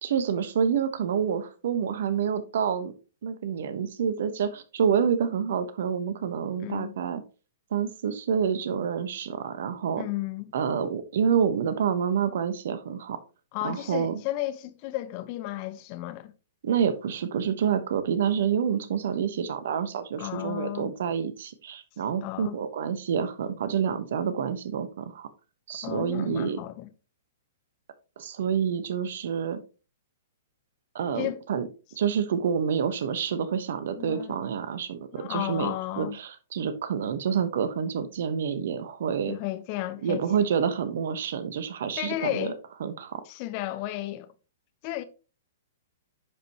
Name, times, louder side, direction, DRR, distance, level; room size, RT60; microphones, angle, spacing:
voice 1, 0.0-2.9 3.2-7.2 7.7-10.1 10.5-13.2 13.6-14.2 16.6-25.3 25.7-26.6 28.2-29.6 30.9-31.7 31.9-39.3 40.0-42.5 42.8-43.2, right 7 dB, 60° right, 1.2 m, -28 dB
voice 2, 6.6-7.0 10.0-10.5 13.5-16.3 20.2-20.9 22.2-22.6 25.8-26.9 31.1-31.4 34.0-34.4 35.1-36.2 39.3-40.2 42.0-42.6 43.2-44.3 44.8-45.0, left 16 dB, 40° left, 0.9 m, -33 dB
10.0 x 5.3 x 3.0 m
figure-of-eight pair, 115°, 0 cm